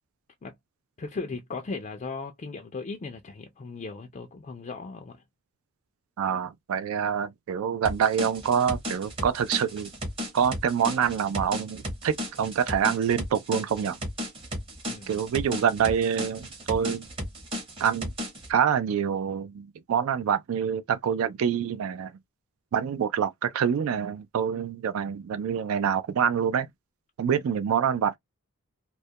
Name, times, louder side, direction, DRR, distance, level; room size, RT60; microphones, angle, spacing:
voice 1, 1.0-5.2 14.9-15.2, left 4 dB, 35° left, 0.4 m, -37 dB
voice 2, 6.2-9.9 10.3-14.0 15.1-17.1 17.8-18.1 18.5-22.1 22.7-26.7 27.2-28.2, right 8 dB, 70° right, 0.3 m, -26 dB
sound 1, 7.8-18.5, equal, 25° right, 0.8 m, -35 dB
2.2 x 2.1 x 2.6 m
head